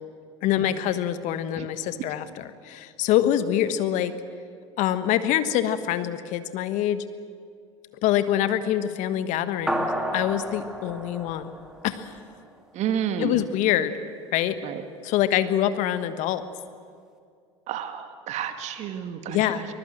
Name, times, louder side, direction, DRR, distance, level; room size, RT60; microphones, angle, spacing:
voice 1, 0.4-4.1 4.8-7.0 8.0-11.5 11.8-12.1 13.2-13.9 14.3-14.6 15.0-16.4 19.3-19.7, left 11 dB, 55° left, 12 dB, 1.3 m, -25 dB
sound 1, 9.7-12.4, right 1 dB, 5° right, 2.9 m, -31 dB
voice 2, 12.7-13.4 14.6-14.8 17.7-19.7, right 8 dB, 50° right, 8 dB, 2.1 m, -30 dB
23.5 x 21.5 x 7.8 m, 2.3 s
hypercardioid pair, 75°, 15 cm